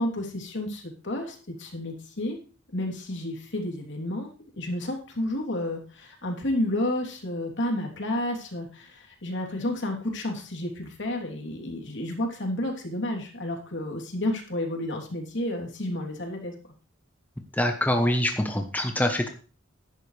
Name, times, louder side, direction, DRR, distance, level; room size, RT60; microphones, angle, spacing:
voice 1, 0.0-2.4 2.7-16.5, left 1 dB, 65° left, 2 dB, 3.2 m, -31 dB
voice 2, 17.5-19.3, left 1 dB, 10° left, 4 dB, 1.0 m, -24 dB
14.0 x 11.0 x 3.3 m, 0.37 s
head